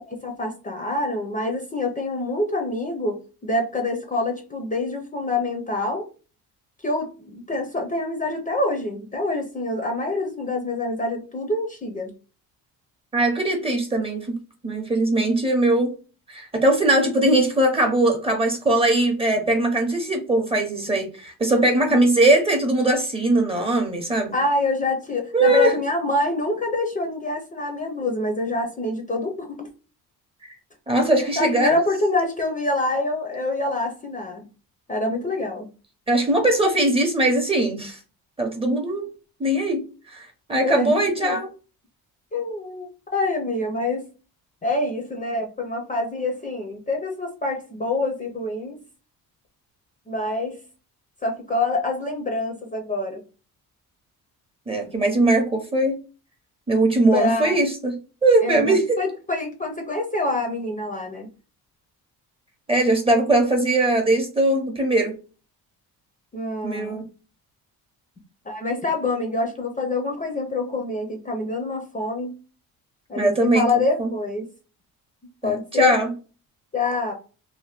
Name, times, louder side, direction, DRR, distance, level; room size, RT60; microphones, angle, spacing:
voice 1, 0.1-3.2 3.4-6.1 6.8-12.1 24.3-29.7 31.4-34.5 34.9-35.7 40.6-41.4 42.3-44.0 44.6-48.8 50.1-50.6 51.2-53.2 57.1-57.6 58.4-61.3 66.3-67.0 68.5-72.3 73.1-74.5 75.4-75.9 76.7-77.1, left 2 dB, 20° left, 2 dB, 0.5 m, -26 dB
voice 2, 13.1-14.4 14.6-15.9 16.3-24.3 25.3-25.7 30.9-31.8 36.1-38.0 38.4-39.1 39.4-39.8 40.1-41.5 54.7-56.0 56.7-58.9 62.7-65.1 66.6-67.1 73.1-73.7 74.0-74.1 75.4-76.1, right 2 dB, 15° right, 3 dB, 0.7 m, -20 dB
2.8 x 2.1 x 3.3 m, 0.35 s
cardioid pair, 130°, 37 cm